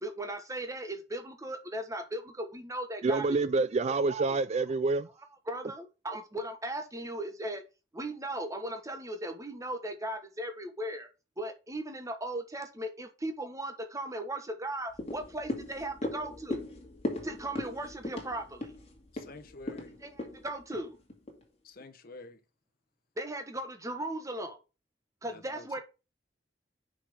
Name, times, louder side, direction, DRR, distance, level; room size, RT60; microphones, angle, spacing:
voice 1, 0.0-3.3 5.5-7.6 7.9-11.1 11.4-16.6 17.2-18.7 20.0-21.0 23.2-24.6 25.2-25.8, right 1 dB, 20° right, 1.3 m, -37 dB
voice 2, 3.0-5.1, right 3 dB, 35° right, 0.4 m, -27 dB
sound 1, 14.9-21.4 21.8-21.9, left 1 dB, 35° left, 2.0 m, -38 dB
voice 3, 19.1-19.9 21.6-22.4 25.3-25.8, left 3 dB, 55° left, 1.0 m, -49 dB
5.8 x 5.0 x 4.9 m
head